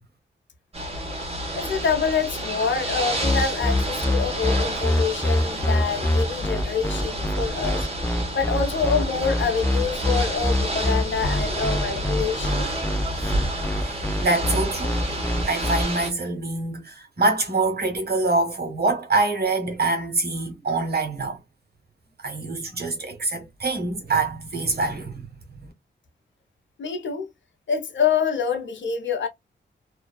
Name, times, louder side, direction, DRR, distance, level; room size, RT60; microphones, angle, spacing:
Ocean / Boat Water vehicle, 0.7-16.1, right 1 dB, 30° right, 1.1 m, -30 dB
voice 1, 1.5-7.9 8.3-12.7 26.8-27.3 27.7-29.3, left 6 dB, 65° left, 0.8 m, -26 dB
sound 1, 3.2-15.8, left 1 dB, 10° left, 0.4 m, -24 dB
voice 2, 13.8-15.0 15.4-21.4 22.2-25.3 25.6-25.7, right 3 dB, 55° right, 1.0 m, -25 dB
2.5 x 2.3 x 2.2 m
cardioid pair, 65°, 20 cm